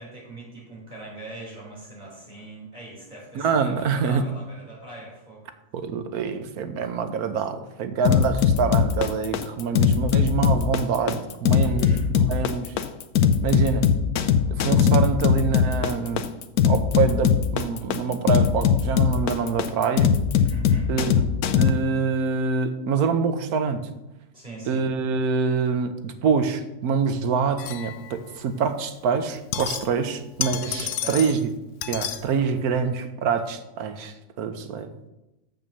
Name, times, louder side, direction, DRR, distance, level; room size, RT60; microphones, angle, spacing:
voice 1, 0.0-5.4 11.6-12.1 20.5-20.9 24.3-24.8 30.6-31.3, right 2 dB, 30° right, -5 dB, 4.1 m, -40 dB
voice 2, 3.3-4.2 5.7-12.7 13.4-13.9 14.5-16.3 16.7-20.1 20.9-21.1 21.6-23.9 24.7-31.4 31.9-34.9, right 5 dB, 80° right, 9 dB, 1.3 m, -25 dB
sound 1, 8.1-21.7, left 7 dB, 85° left, 1.2 m, -20 dB
sound 2, 27.6-28.4 29.2-30.1 30.4-31.4 31.8-32.2, left 10 dB, 65° left, 0.8 m, -31 dB
6.9 x 6.2 x 6.8 m, 0.95 s
omnidirectional pair, 1.6 m